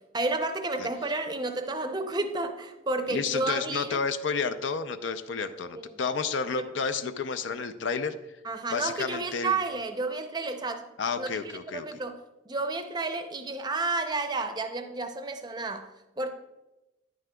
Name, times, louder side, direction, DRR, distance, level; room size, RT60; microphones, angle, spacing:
voice 1, 0.1-4.0 5.7-5.8 6.6-6.7 8.4-10.9 11.2-11.3 11.7-12.2 12.5-16.3, right 3 dB, 20° right, 7 dB, 0.5 m, -31 dB
voice 2, 3.1-8.2 8.7-9.6 11.0-12.0, left 5 dB, 70° left, 10 dB, 0.5 m, -31 dB
10.5 x 9.6 x 2.3 m, 1.0 s
head